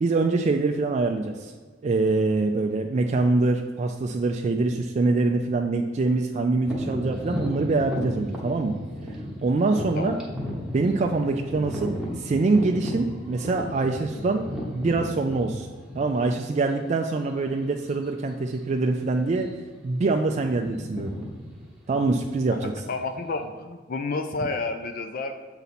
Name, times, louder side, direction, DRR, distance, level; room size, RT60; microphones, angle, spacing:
voice 1, 0.0-1.5 1.8-8.8 9.4-10.2 10.7-14.4 14.7-15.7 16.0-19.5 19.8-21.2 21.9-22.7, right 3 dB, 35° right, 3 dB, 0.3 m, -24 dB
sound 1, 6.6-16.4 17.1-17.2 17.8-18.0 18.3-18.6 19.2-19.8 20.0-23.4, equal, 5° right, 1.1 m, -35 dB
voice 2, 22.6-25.3, left 3 dB, 45° left, 7 dB, 0.4 m, -30 dB
6.9 x 4.0 x 4.2 m, 1.5 s
head